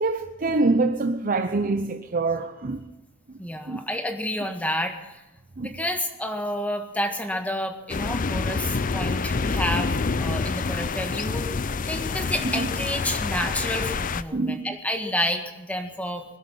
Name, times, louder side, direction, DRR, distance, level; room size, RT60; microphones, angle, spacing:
voice 1, 0.0-2.8 3.7-3.8 5.6-5.7 12.4-12.7 14.3-14.6, right 3 dB, 45° right, 0.7 m, -25 dB
voice 2, 3.4-5.2 5.6-11.5 11.9-16.2, left 1 dB, 5° left, 1.6 m, -30 dB
sound 1, 7.9-14.2, left 4 dB, 40° left, 0.6 m, -27 dB
21.0 x 12.0 x 5.6 m
head